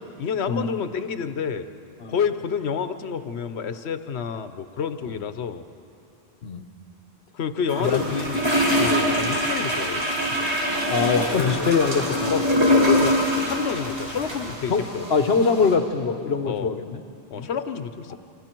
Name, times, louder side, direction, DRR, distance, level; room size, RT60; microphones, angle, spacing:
voice 1, 0.2-1.7 2.1-5.6 7.3-8.5 8.8-10.0 10.4-10.5 11.4-11.7 12.2-12.4 12.9-15.1 16.4-16.7 17.3-18.2, left 7 dB, 90° left, 10 dB, 1.1 m, -29 dB
sound 1, 7.7-15.7, left 1 dB, 25° right, 4.9 m, -24 dB
Rain, 7.8-14.5, right 1 dB, 60° right, 3.1 m, -37 dB
voice 2, 10.9-12.4 14.7-14.8 15.1-17.0 17.3-17.5 18.1-18.2, left 5 dB, 70° left, 8 dB, 1.3 m, -23 dB
27.5 x 25.0 x 4.5 m, 2.7 s
omnidirectional pair, 1.1 m